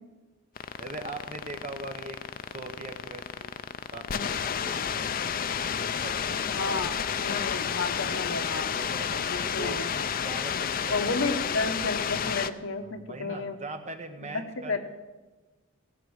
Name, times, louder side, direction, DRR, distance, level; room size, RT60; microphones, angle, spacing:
sound 1, 0.6-12.5, left 7 dB, 45° left, 0.5 m, -31 dB
voice 1, 0.8-3.6 3.9-6.6 8.6-9.8 10.2-11.2 12.9-14.8, right 2 dB, 35° right, 5 dB, 1.3 m, -41 dB
voice 2, 6.5-7.0 7.2-8.8 9.2-9.9 10.9-13.6 14.3-14.4 14.7-14.8, left 3 dB, 70° left, 6 dB, 1.3 m, -31 dB
16.0 x 8.8 x 6.5 m, 1.2 s
head